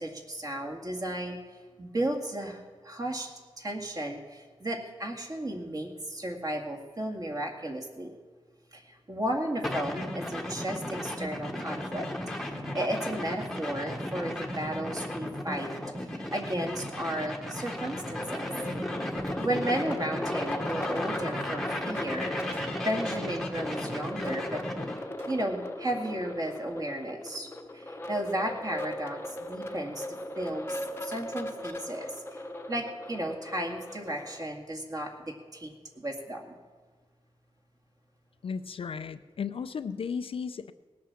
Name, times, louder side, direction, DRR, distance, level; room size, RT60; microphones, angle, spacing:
voice 1, 0.0-1.4 1.8-3.3 3.6-8.1 8.7-12.1 12.4-15.8 16.0-18.5 19.4-24.6 25.3-27.5 27.7-30.0 30.4-32.4 32.7-36.6, right 1 dB, 35° right, 2 dB, 2.0 m, -34 dB
sound 1, 9.6-25.0, left 1 dB, 5° left, 1.2 m, -35 dB
sound 2, 17.8-34.5, left 1 dB, 20° left, 0.9 m, -39 dB
sound 3, 18.3-19.7 20.0-20.1 20.4-20.5 21.9-23.0 24.8-24.9 25.1-25.6, right 1 dB, 70° right, 4.1 m, -54 dB
voice 2, 38.4-40.7, left 6 dB, 60° left, 11 dB, 0.5 m, -35 dB
19.0 x 8.5 x 7.3 m, 1.4 s
wide cardioid pair, 165°, 11 cm